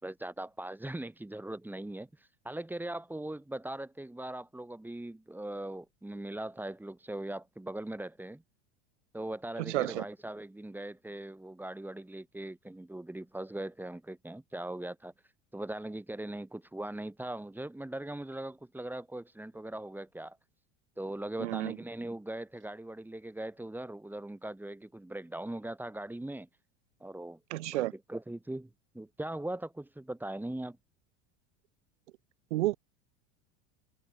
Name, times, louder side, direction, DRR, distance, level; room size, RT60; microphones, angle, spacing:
voice 1, 0.0-8.4 9.1-20.4 21.0-26.5 27.0-27.4 27.7-28.7 28.9-30.8, right 1 dB, 5° right, 5.7 m, -40 dB
voice 2, 9.6-10.1 21.4-21.8 27.5-27.9 32.5-32.7, right 17 dB, 80° right, 3.9 m, -31 dB
supercardioid pair, 110°, 35 cm